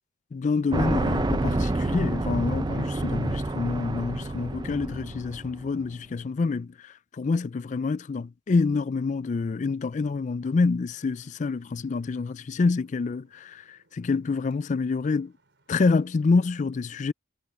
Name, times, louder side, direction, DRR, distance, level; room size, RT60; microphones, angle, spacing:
voice 1, 0.3-15.3 15.7-17.1, left 4 dB, 40° left, 0.3 m, -27 dB
sound 1, 0.7-5.7, right 2 dB, 20° right, 0.5 m, -28 dB
Traffic noise roadway noise, 10.9-16.2, right 2 dB, 65° right, 6.1 m, -66 dB
head